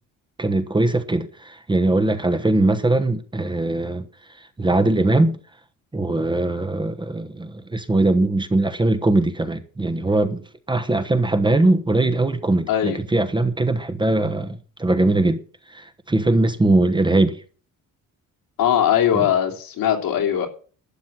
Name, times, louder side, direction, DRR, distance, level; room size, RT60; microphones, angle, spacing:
voice 1, 0.4-4.0 4.6-5.4 5.9-15.4 15.7-17.4 19.1-19.3, right 2 dB, 15° right, 1.1 m, -21 dB
voice 2, 18.6-20.5, left 10 dB, 80° left, 3.2 m, -20 dB
12.0 x 7.9 x 7.5 m
cardioid pair, 130°, 34 cm